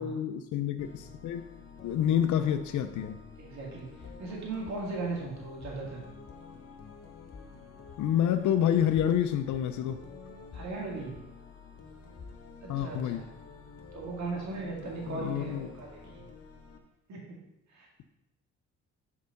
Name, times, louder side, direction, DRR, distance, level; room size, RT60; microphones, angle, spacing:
voice 1, 0.0-1.4 1.8-3.2 8.0-10.0 12.7-13.2 15.1-15.7, left 10 dB, 75° left, 9 dB, 0.6 m, -28 dB
sound 1, 0.8-16.8, left 5 dB, 50° left, 1.2 m, -50 dB
voice 2, 3.4-6.0 10.5-11.2 12.6-13.2 13.9-16.2 17.1-17.4 17.7-17.9, right 3 dB, 65° right, -2 dB, 2.1 m, -38 dB
sound 2, 4.0-4.3 4.7-4.8 5.6-5.9 6.3-6.4 7.3-7.5 7.9-8.0 8.9-9.2 9.5-9.6 10.5-10.8 11.2-11.3 12.2-12.4 12.8-12.9, left 5 dB, 30° left, 0.6 m, -48 dB
6.6 x 4.8 x 5.3 m, 0.93 s
cardioid pair, 90°, 30 cm